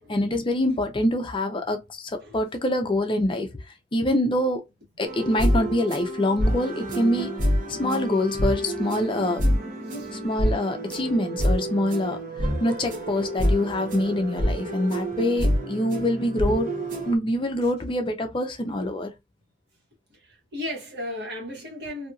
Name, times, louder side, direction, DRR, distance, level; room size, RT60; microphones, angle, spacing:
voice 1, 0.1-3.6 3.9-4.6 5.0-7.3 7.7-9.4 10.1-16.7 17.0-19.1, left 1 dB, 30° left, 0.5 m, -25 dB
sound 1, 5.0-17.1, equal, 45° right, 0.7 m, -27 dB
voice 2, 20.2-22.1, left 1 dB, 60° right, 1.5 m, -35 dB
2.7 x 2.7 x 2.3 m
head